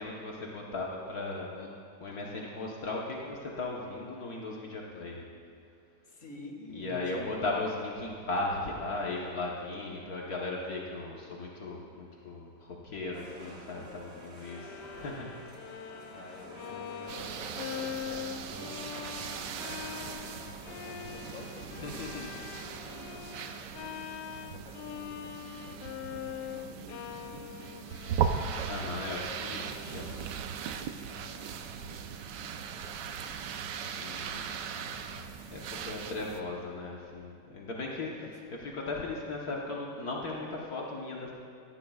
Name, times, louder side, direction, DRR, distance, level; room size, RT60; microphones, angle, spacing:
voice 1, 0.0-1.7 2.0-5.2 6.7-15.3 21.8-22.4 28.7-30.3 33.9-34.4 34.7-35.2 35.5-38.2 38.6-41.3, left 2 dB, 60° left, -3 dB, 1.6 m, -37 dB
voice 2, 6.1-7.6 13.9-15.1 16.1-23.9 24.4-26.0 26.5-28.9 31.0-33.3 38.2-38.4, left 2 dB, 30° left, 0 dB, 1.8 m, -50 dB
sound 1, 13.1-23.2, right 2 dB, 40° right, 1.6 m, -50 dB
Bowed string instrument, 14.4-30.5, left 9 dB, 80° left, 1.2 m, -43 dB
sound 2, 17.1-36.4, right 7 dB, 85° right, 1.3 m, -38 dB
19.0 x 14.0 x 2.4 m, 2.3 s
omnidirectional pair, 1.8 m